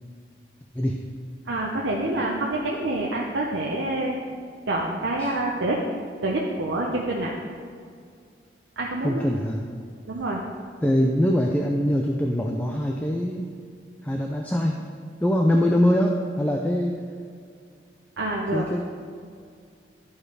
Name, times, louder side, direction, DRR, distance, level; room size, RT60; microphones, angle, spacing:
voice 1, 1.5-4.2 4.7-5.8 6.2-7.3 8.8-9.2 10.1-10.4 18.2-18.7, right 2 dB, 85° right, -2 dB, 0.8 m, -27 dB
voice 2, 9.0-9.6 10.8-13.4 14.0-14.8 15.2-17.0 18.5-18.8, equal, 10° left, 0 dB, 0.4 m, -23 dB
11.0 x 4.6 x 4.8 m, 2.2 s
head